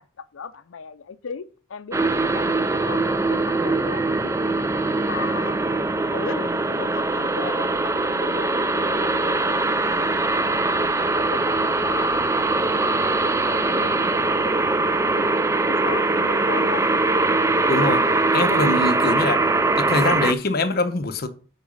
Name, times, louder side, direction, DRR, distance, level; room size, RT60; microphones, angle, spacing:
voice 1, 0.0-5.8 6.1-10.6 11.0-12.2 12.8-14.9 15.1-15.2 15.7-16.9 18.6-18.9, left 6 dB, 70° left, 0.5 m, -37 dB
sound 1, 1.9-20.3, right 2 dB, 15° right, 0.3 m, -22 dB
voice 2, 17.7-18.0 18.3-19.4 19.8-21.3, left 2 dB, 45° left, 0.9 m, -23 dB
8.2 x 4.8 x 5.3 m
head